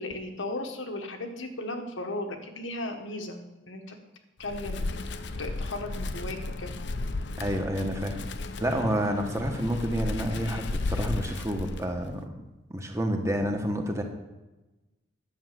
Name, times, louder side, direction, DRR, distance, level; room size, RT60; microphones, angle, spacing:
voice 1, 0.0-3.4 3.7-4.0 4.4-4.9 5.4-6.7, left 2 dB, 85° left, 4 dB, 1.5 m, -36 dB
Wind, 4.4-12.2, left 2 dB, 60° left, 0.6 m, -34 dB
voice 2, 7.4-8.2 8.6-12.3 12.7-14.0, equal, 15° right, 4 dB, 1.1 m, -29 dB
10.5 x 6.2 x 7.7 m, 1.1 s
head